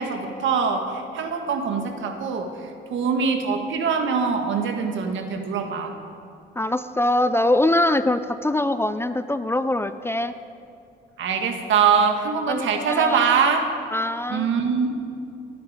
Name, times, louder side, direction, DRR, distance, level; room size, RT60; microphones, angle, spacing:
voice 1, 0.0-5.9 11.2-13.7 14.3-15.0, right 6 dB, 75° right, 5 dB, 1.6 m, -23 dB
voice 2, 6.6-10.3 12.5-13.4 13.9-14.5, left 1 dB, 10° left, 12 dB, 0.4 m, -23 dB
14.5 x 12.0 x 5.0 m, 2.5 s
cardioid pair, 90°, 20 cm